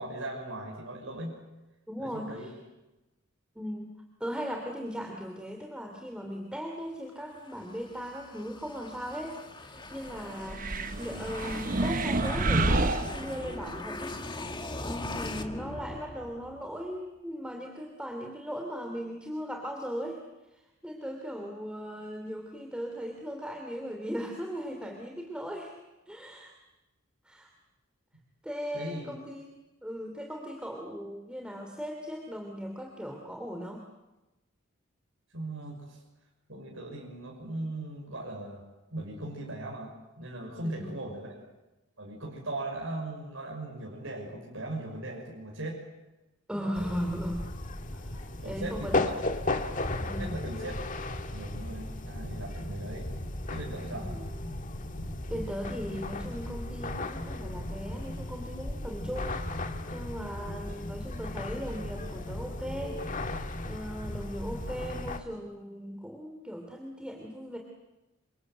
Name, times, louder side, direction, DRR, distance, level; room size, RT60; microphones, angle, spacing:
voice 1, 0.0-1.4 2.0-2.5 28.7-29.2 35.3-36.0 36.5-38.6 38.9-41.5 42.0-45.8 46.5-47.1 48.4-49.2 50.2-50.9 51.2-53.1 53.5-54.1, right 2 dB, 70° right, -2 dB, 5.8 m, -39 dB
voice 2, 1.9-2.5 3.5-3.9 4.2-14.2 14.7-20.2 20.5-25.7 26.1-26.5 27.2-27.5 28.4-29.5 29.8-33.8 40.6-40.9 46.5-47.4 47.9-49.0 50.0-50.4 53.9-54.3 55.3-59.5 59.9-63.0 63.6-67.6, equal, 5° right, 2 dB, 2.9 m, -38 dB
sound 1, 7.3-16.7, left 2 dB, 20° left, 1.8 m, -41 dB
sound 2, 10.5-13.8, right 2 dB, 40° right, 1.0 m, -29 dB
sound 3, 46.7-65.2, left 2 dB, 40° left, 1.6 m, -35 dB
28.5 x 25.5 x 8.0 m, 1.0 s
head